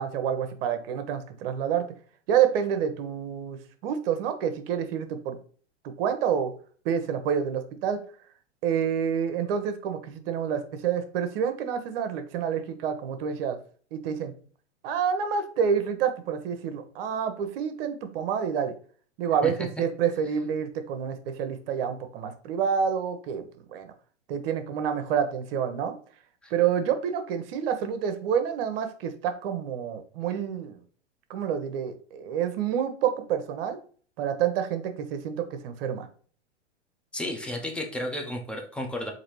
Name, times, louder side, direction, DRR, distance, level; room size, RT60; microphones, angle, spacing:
voice 1, 0.0-1.9 2.3-5.4 5.8-6.5 6.8-8.0 8.6-13.6 13.9-14.3 14.8-18.7 19.2-23.4 23.7-23.9 24.3-26.0 26.5-30.8 31.3-33.8 34.2-36.1, right 8 dB, 55° right, 8 dB, 0.8 m, -28 dB
voice 2, 37.1-39.1, left 1 dB, 5° left, 2 dB, 0.4 m, -32 dB
4.0 x 2.7 x 3.1 m, 0.44 s
hypercardioid pair, 115°, 36 cm